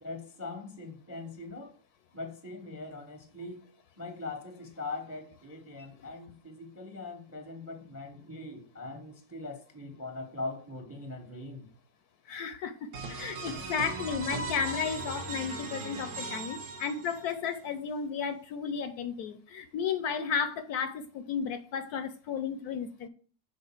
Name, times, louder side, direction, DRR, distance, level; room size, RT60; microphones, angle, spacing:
voice 1, 0.0-1.8 2.1-3.7 4.0-11.7, left 3 dB, 15° right, 0.5 m, -41 dB
voice 2, 12.3-23.1, left 6 dB, 70° left, 1.0 m, -33 dB
sound 1, 12.9-17.5, right 3 dB, 60° right, 1.6 m, -38 dB
6.4 x 3.9 x 5.7 m
omnidirectional pair, 1.9 m